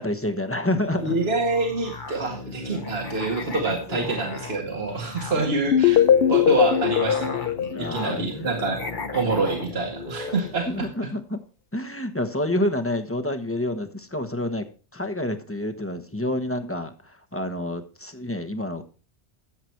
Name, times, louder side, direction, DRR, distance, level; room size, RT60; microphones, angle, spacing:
voice 1, 0.0-1.2 3.9-4.2 5.0-5.5 7.7-8.5 10.3-11.4 11.7-14.6 14.9-18.8, left 1 dB, 10° left, 6 dB, 1.1 m, -29 dB
Musical instrument, 0.8-11.0, left 3 dB, 45° left, 1.4 m, -36 dB
voice 2, 1.0-7.5 7.8-8.8 9.1-10.9, right 3 dB, 65° right, 2 dB, 1.9 m, -26 dB
sound 1, 5.7-8.7, left 9 dB, 65° left, 0.8 m, -20 dB
13.5 x 7.9 x 4.5 m, 0.37 s
omnidirectional pair, 1.1 m